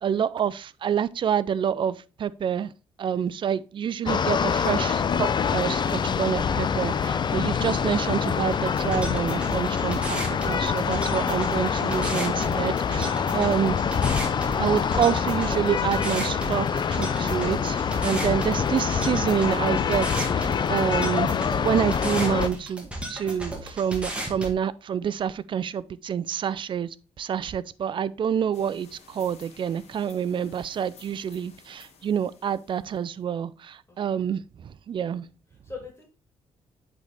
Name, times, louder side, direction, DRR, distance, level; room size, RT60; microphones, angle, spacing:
voice 1, 0.0-2.7 3.0-13.8 14.6-21.3 21.6-26.9 27.2-35.3, right 8 dB, 45° right, 0.4 m, -27 dB
sound 1, 4.1-22.5, left 6 dB, 40° left, 0.5 m, -25 dB
sound 2, 8.5-24.5, right 1 dB, 10° right, 1.8 m, -35 dB
sound 3, 28.5-33.2, left 5 dB, 75° left, 1.5 m, -53 dB
voice 2, 35.5-36.0, left 4 dB, 25° left, 2.6 m, -43 dB
8.1 x 3.9 x 3.4 m
cardioid pair, 95°, 11 cm